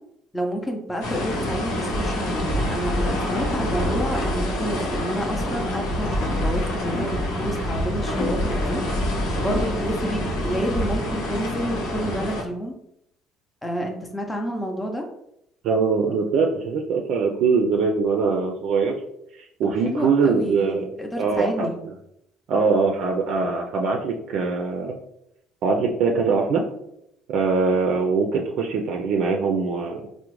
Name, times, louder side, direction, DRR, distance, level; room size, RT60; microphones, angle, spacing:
voice 1, 0.3-8.8 9.4-12.8 13.6-15.0 19.8-21.8, equal, 10° left, 1 dB, 0.6 m, -29 dB
sound 1, 1.0-12.4, left 1 dB, 85° left, 0.9 m, -26 dB
voice 2, 15.6-18.9 19.4-20.9 21.2-21.7 22.5-24.9 25.6-26.6 27.3-30.0, right 4 dB, 65° right, 2 dB, 0.4 m, -22 dB
3.6 x 2.0 x 3.0 m, 0.77 s
supercardioid pair, 85°, 0 cm